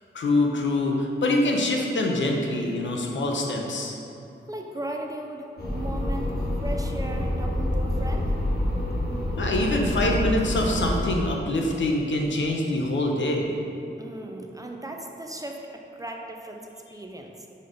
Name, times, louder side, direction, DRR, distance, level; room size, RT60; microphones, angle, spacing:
voice 1, 0.1-4.0 9.4-13.6, left 1 dB, 70° left, 0 dB, 0.8 m, -25 dB
voice 2, 4.5-8.3 14.0-17.5, right 1 dB, 15° right, 1 dB, 0.4 m, -37 dB
sound 1, 5.6-11.1, left 1 dB, 50° left, 1.2 m, -27 dB
5.3 x 4.3 x 5.0 m, 2.8 s
wide cardioid pair, 165°, 20 cm